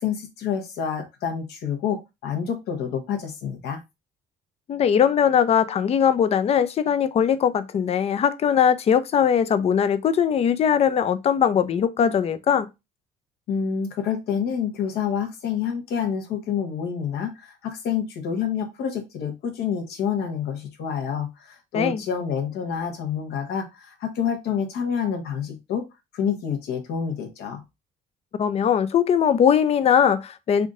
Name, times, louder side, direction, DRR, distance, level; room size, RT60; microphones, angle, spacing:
voice 1, 0.0-3.8 13.5-25.9 26.1-27.6, left 7 dB, 75° left, 1.2 m, -28 dB
voice 2, 4.7-12.7 21.7-22.0 28.4-30.7, left 8 dB, 40° left, 0.5 m, -20 dB
3.6 x 2.6 x 3.6 m
cardioid pair, 110°, 17 cm